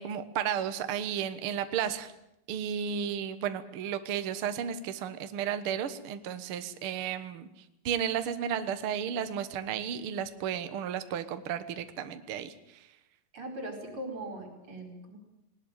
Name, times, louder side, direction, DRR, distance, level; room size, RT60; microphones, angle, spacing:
voice 1, 0.0-2.1 2.5-7.5 7.8-12.9, right 8 dB, 90° right, 10 dB, 1.2 m, -33 dB
voice 2, 13.3-15.2, right 1 dB, 35° right, 3 dB, 5.4 m, -40 dB
20.0 x 19.5 x 9.0 m, 0.85 s
omnidirectional pair, 4.5 m